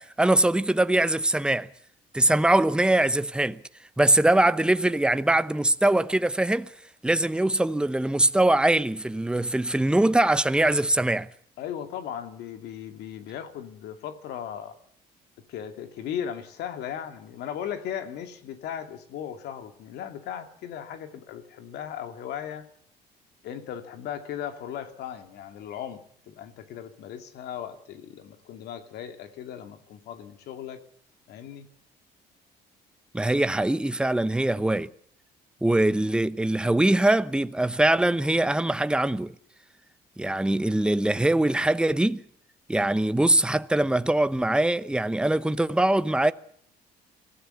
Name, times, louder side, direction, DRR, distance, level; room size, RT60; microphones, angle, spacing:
voice 1, 0.0-1.7 2.1-3.6 4.0-6.7 7.0-11.3 33.1-34.9 35.6-39.3 40.2-42.2 42.7-46.3, right 1 dB, 5° right, 0.9 m, -22 dB
voice 2, 11.6-14.8 15.5-22.7 23.4-30.8 31.3-31.7, left 9 dB, 80° left, 2.6 m, -37 dB
25.0 x 16.0 x 7.1 m
cardioid pair, 110°, 17 cm